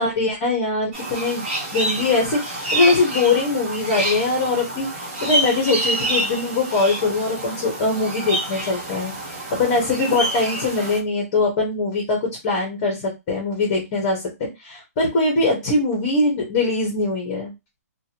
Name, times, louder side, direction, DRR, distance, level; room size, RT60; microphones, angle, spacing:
voice 1, 0.0-1.5 1.7-17.5, left 3 dB, 25° left, -1 dB, 0.7 m, -22 dB
sound 1, 0.9-11.0, right 1 dB, 40° right, 1.2 m, -27 dB
2.6 x 2.2 x 2.8 m, 0.23 s
hypercardioid pair, 175°, 9 cm